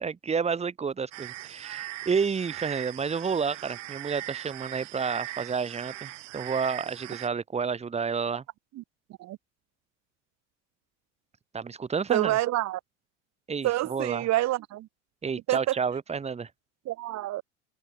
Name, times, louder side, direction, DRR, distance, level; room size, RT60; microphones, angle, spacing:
voice 1, 0.0-8.4 11.5-12.4 13.5-14.3 15.2-16.5, right 5 dB, 15° right, 1.2 m, -30 dB
sound 1, 1.1-7.3, right 17 dB, 80° right, 3.4 m, -40 dB
voice 2, 12.1-12.8 13.6-14.9 15.5-15.7 16.9-17.4, right 15 dB, 45° right, 1.2 m, -27 dB
open air
hypercardioid pair, 95°, 37 cm